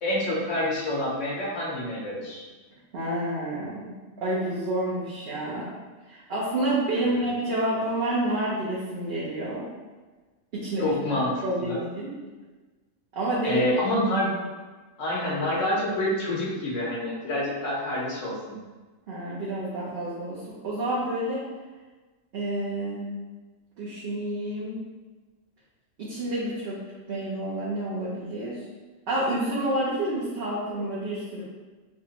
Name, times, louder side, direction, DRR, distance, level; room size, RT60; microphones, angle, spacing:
voice 1, 0.0-2.4 7.0-7.3 10.8-11.8 13.4-14.3 15.0-18.3, left 1 dB, 65° left, -5 dB, 1.2 m, -27 dB
voice 2, 2.9-3.9 4.2-5.7 6.1-9.7 10.5-10.9 11.4-12.1 13.1-13.6 19.1-21.5 22.3-23.1 23.8-24.8 26.0-26.8 27.1-28.6 29.1-31.4, right 1 dB, 55° right, -8 dB, 0.9 m, -29 dB
3.4 x 3.0 x 2.9 m, 1.3 s
omnidirectional pair, 1.4 m